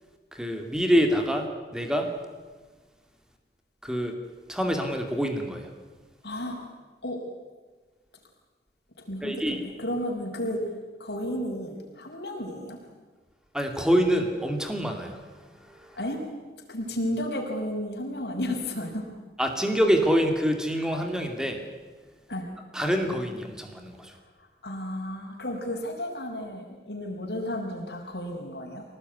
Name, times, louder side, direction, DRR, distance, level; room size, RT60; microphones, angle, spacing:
voice 1, 0.3-1.5 1.7-2.1 3.8-4.1 4.5-5.7 9.2-9.6 13.5-15.2 15.6-16.0 19.4-21.6 22.7-24.1, equal, 5° right, 4 dB, 2.6 m, -26 dB
voice 2, 6.2-6.6 7.0-7.2 9.0-10.6 11.0-12.8 16.0-16.2 16.7-19.1 22.3-22.5 24.6-28.8, left 1 dB, 70° left, 1 dB, 5.7 m, -33 dB
25.5 x 18.5 x 9.6 m, 1.4 s
head